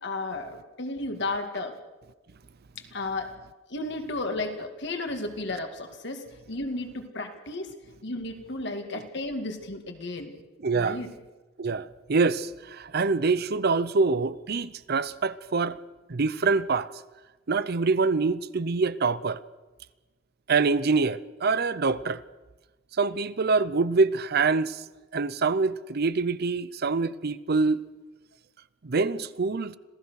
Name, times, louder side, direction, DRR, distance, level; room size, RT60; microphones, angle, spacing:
voice 1, 0.0-1.8 2.9-3.3 3.7-7.7 8.0-10.3 10.7-11.1, left 2 dB, 65° left, 2.4 m, -33 dB
voice 2, 10.6-11.0 11.6-15.8 16.1-16.9 17.5-19.4 20.5-22.2 23.0-24.8 25.1-27.8 28.8-29.8, right 4 dB, 55° right, 0.7 m, -25 dB
26.5 x 16.0 x 6.5 m
head